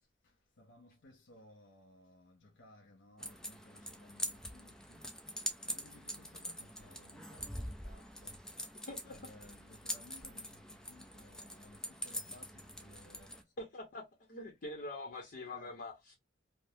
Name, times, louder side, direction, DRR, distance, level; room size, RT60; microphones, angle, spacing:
voice 1, 0.2-5.1 5.6-8.4 9.1-13.5 15.5-15.7, left 1 dB, 85° left, 0.6 m, -60 dB
sound 1, 3.2-13.4, left 1 dB, 5° left, 0.4 m, -44 dB
voice 2, 8.8-9.2 13.6-14.0 14.3-16.1, left 2 dB, 55° left, 0.8 m, -44 dB
3.4 x 2.0 x 2.7 m
head